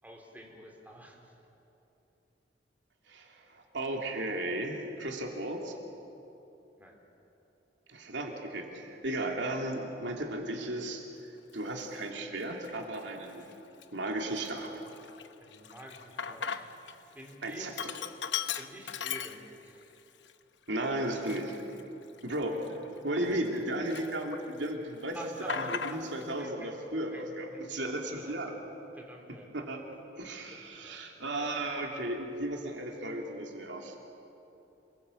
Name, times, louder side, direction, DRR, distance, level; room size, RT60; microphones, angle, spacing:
voice 1, 0.0-1.3 6.8-7.0 15.4-16.8 17.1-17.8 18.6-19.9 22.5-22.8 25.1-26.7 27.1-28.3 28.9-29.5 30.2-31.1, equal, 10° right, 0 dB, 3.7 m, -48 dB
voice 2, 3.1-5.7 7.9-11.0 11.5-13.4 13.9-14.8 17.4-17.7 20.7-21.6 22.2-22.6 23.0-25.2 25.5-28.5 29.5-29.8 30.2-34.0, right 1 dB, 75° right, 1 dB, 3.0 m, -35 dB
Sink (filling or washing), 11.7-11.8 12.5-13.0 13.4-13.5 13.8-16.9 17.2-19.8 20.2-20.3 21.0-23.6 23.9-24.7 24.9-26.3, left 7 dB, 75° left, 0.9 m, -38 dB
27.5 x 21.0 x 8.5 m, 3.0 s
head